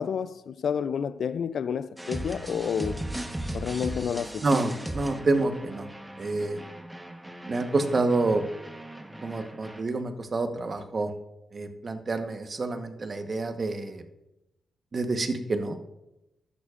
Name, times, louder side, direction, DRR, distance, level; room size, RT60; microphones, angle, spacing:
voice 1, 0.0-3.1 3.5-4.4, left 7 dB, 70° left, 0.3 m, -30 dB
sound 1, 2.0-9.8, right 1 dB, 10° right, 1.0 m, -38 dB
voice 2, 4.4-5.9 6.2-6.6 7.5-8.4 9.2-11.1 11.5-14.0 14.9-15.8, right 3 dB, 40° right, 1.0 m, -28 dB
13.0 x 11.0 x 2.4 m
cardioid pair, 100°, 0 cm